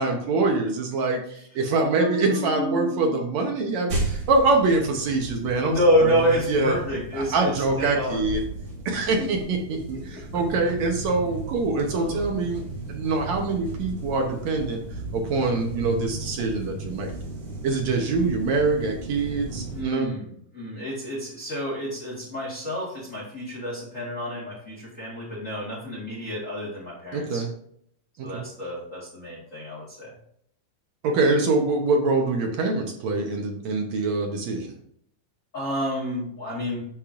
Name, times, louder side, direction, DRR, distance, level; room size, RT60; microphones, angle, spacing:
voice 1, 0.0-1.2 1.6-6.1 6.5-6.8 7.1-8.4 8.9-12.6 12.9-14.8 15.1-17.1 17.6-20.1 27.1-27.5 28.2-28.5 31.0-34.7, right 3 dB, 70° right, 2 dB, 2.0 m, -24 dB
voice 2, 2.0-3.2 5.6-8.3 9.0-9.3 9.7-10.2 11.9-12.2 19.7-20.3 20.5-27.5 28.2-30.1 35.5-36.8, equal, 35° left, -3 dB, 1.4 m, -28 dB
sound 1, 3.9-19.8, right 2 dB, 45° right, 2.6 m, -35 dB
8.7 x 6.5 x 2.5 m, 0.69 s
omnidirectional pair, 3.7 m